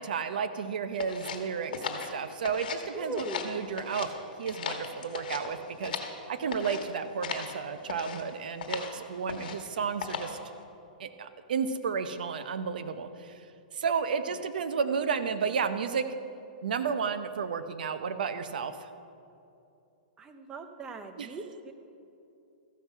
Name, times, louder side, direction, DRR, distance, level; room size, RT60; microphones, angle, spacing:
voice 1, 0.0-4.1 4.4-6.0 6.3-10.4 11.0-13.5 13.7-16.1 16.6-18.9 21.2-21.3, right 6 dB, 75° right, 10 dB, 0.7 m, -32 dB
sound 1, 1.0-2.9 3.1-4.1 4.4-6.2 6.5-6.9 7.2-7.5 7.9-8.2 8.6-8.9 9.3-9.7 10.0-10.4, left 6 dB, 75° left, 1.3 m, -37 dB
voice 2, 2.9-3.5 20.2-21.7, right 3 dB, 15° right, 7 dB, 0.6 m, -39 dB
14.0 x 6.1 x 5.6 m, 2.7 s
hypercardioid pair, 155°, 5 cm